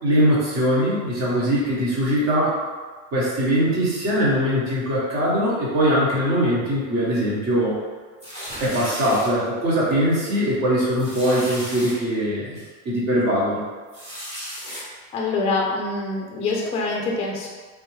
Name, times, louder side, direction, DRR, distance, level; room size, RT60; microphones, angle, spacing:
voice 1, 0.0-2.6 3.1-7.8 8.6-12.6 12.8-13.6, equal, 45° right, -6 dB, 1.3 m, -21 dB
sound 1, 8.2-9.3 9.9-10.1 10.3-10.4 11.0-11.9 12.5-12.7 13.9-14.8, equal, 15° right, 1.1 m, -35 dB
voice 2, 15.1-17.5, left 3 dB, 15° left, -2 dB, 0.4 m, -25 dB
3.5 x 2.2 x 3.1 m, 1.5 s
supercardioid pair, 135°, 37 cm